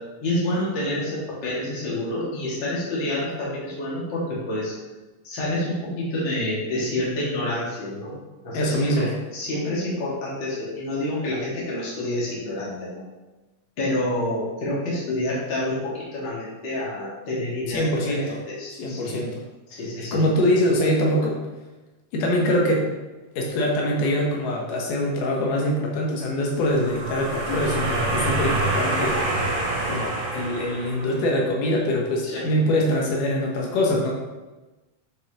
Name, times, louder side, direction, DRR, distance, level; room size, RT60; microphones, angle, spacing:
voice 1, 0.2-4.7 5.2-8.2 8.4-13.0 13.8-19.2 19.7-20.2 32.2-32.5, left 1 dB, 40° left, -7 dB, 2.2 m, -28 dB
voice 2, 8.5-9.1 17.7-18.4 18.8-19.4 20.1-21.4 22.1-22.9 23.4-29.4 29.9-34.1, left 1 dB, 85° left, -2 dB, 2.6 m, -23 dB
sound 1, 26.6-31.3, right 2 dB, 60° right, 1.6 m, -26 dB
8.2 x 4.8 x 2.9 m, 1.1 s
omnidirectional pair, 3.6 m